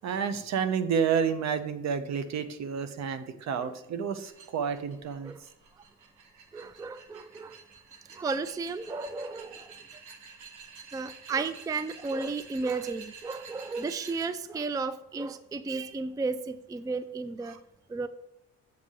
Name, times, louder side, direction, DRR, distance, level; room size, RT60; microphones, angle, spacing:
voice 1, 0.0-5.3 17.5-17.6, right 7 dB, 60° right, 11 dB, 0.8 m, -30 dB
sound 1, 4.3-14.3, right 5 dB, 85° right, 1.2 m, -50 dB
voice 2, 6.5-7.6 8.1-9.8 10.9-17.6 17.9-18.1, right 4 dB, 10° right, 13 dB, 0.4 m, -33 dB
7.6 x 5.7 x 3.8 m, 0.87 s
cardioid pair, 90°, 30 cm